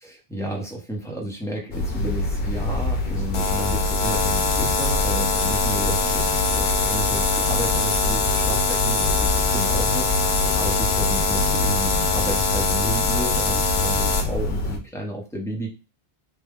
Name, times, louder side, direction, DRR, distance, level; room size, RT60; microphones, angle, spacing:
voice 1, 0.0-15.7, right 1 dB, 5° left, -1 dB, 0.8 m, -32 dB
sound 1, 1.7-14.8, left 2 dB, 70° left, 0.9 m, -26 dB
sound 2, 3.3-14.2, left 4 dB, 45° left, 0.4 m, -23 dB
3.3 x 2.2 x 3.5 m, 0.29 s
omnidirectional pair, 1.0 m